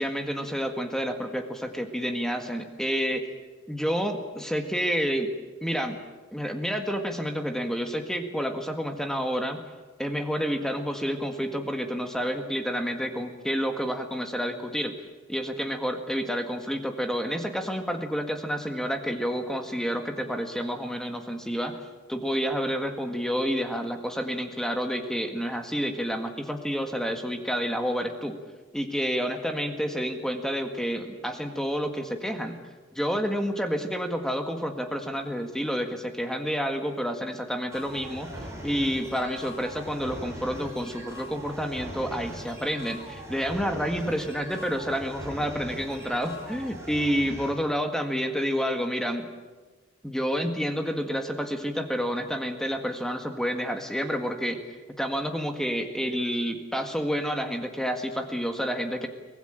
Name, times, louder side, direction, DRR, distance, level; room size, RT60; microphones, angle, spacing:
voice 1, 0.0-3.2 3.7-5.3 5.6-6.0 6.3-9.6 10.0-14.9 15.3-21.8 22.1-28.3 28.7-32.6 32.9-38.3 38.6-49.3 50.0-54.6 55.0-59.1, equal, 5° left, 6 dB, 1.8 m, -29 dB
sound 1, 37.7-47.5, equal, 15° right, 6.0 m, -41 dB
24.0 x 18.0 x 9.0 m, 1.3 s
head